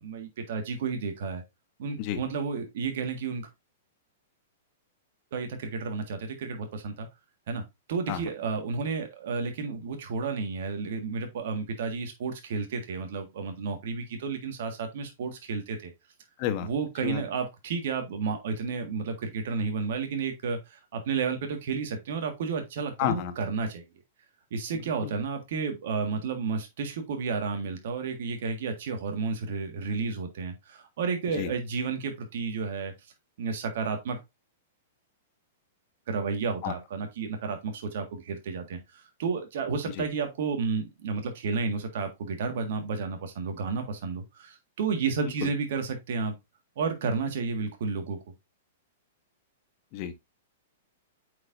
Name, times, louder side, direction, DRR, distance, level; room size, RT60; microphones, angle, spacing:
voice 1, 0.0-1.4 1.8-3.5 5.3-7.1 7.5-7.6 7.9-15.9 16.6-23.8 24.5-32.9 33.4-34.2 36.1-46.3 46.8-48.2, right 5 dB, 65° right, 1.7 m, -31 dB
voice 2, 23.0-23.3 25.0-25.1 31.3-31.5 36.6-36.7 39.9-40.0 45.4-45.5 49.9-50.1, left 11 dB, 45° left, 1.4 m, -30 dB
8.2 x 4.9 x 2.6 m
hypercardioid pair, 115°, 0 cm